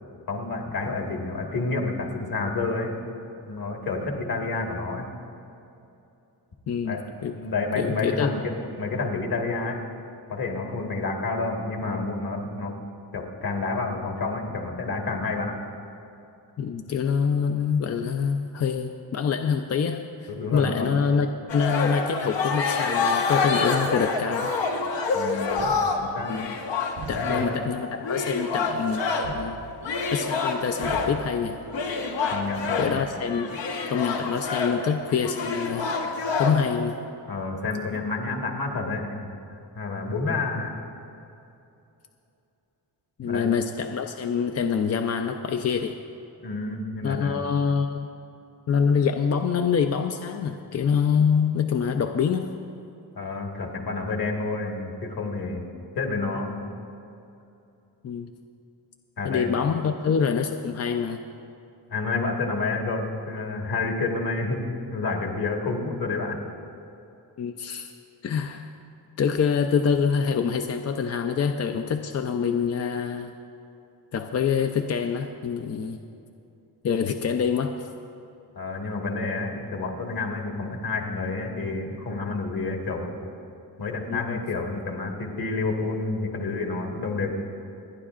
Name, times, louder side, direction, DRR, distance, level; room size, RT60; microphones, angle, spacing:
voice 1, 0.3-2.9 3.4-5.1 6.8-7.0 7.3-8.5 8.8-9.8 10.3-12.8 13.1-15.6 20.3-21.0 25.1-25.7 26.2-26.4 27.1-27.5 32.3-32.9 37.3-39.3 39.7-40.8 43.2-43.5 46.4-47.4 53.1-55.7 55.9-56.6 59.2-59.5 61.9-64.6 64.9-66.4 78.5-83.1 83.8-87.4, left 3 dB, 55° left, 1 dB, 1.7 m, -29 dB
voice 2, 6.7-7.3 7.8-8.3 16.6-21.3 21.5-24.6 26.3-26.5 27.1-29.1 29.3-29.6 30.1-31.6 32.8-33.5 33.9-36.0 36.4-36.9 37.9-38.0 43.2-45.9 47.0-48.1 48.7-52.5 58.0-58.3 59.2-61.2 67.4-67.9 68.2-68.7 69.2-73.3 74.1-76.0 76.8-77.9 84.1-84.4, left 6 dB, 40° left, 5 dB, 0.4 m, -25 dB
sound 1, 21.5-29.4 29.8-31.2 31.7-36.8, left 4 dB, 85° left, 1.3 m, -27 dB
sound 2, 25.5-32.9, right 4 dB, 90° right, 1.1 m, -44 dB
28.5 x 10.0 x 2.5 m, 2.7 s
wide cardioid pair, 160°, 43 cm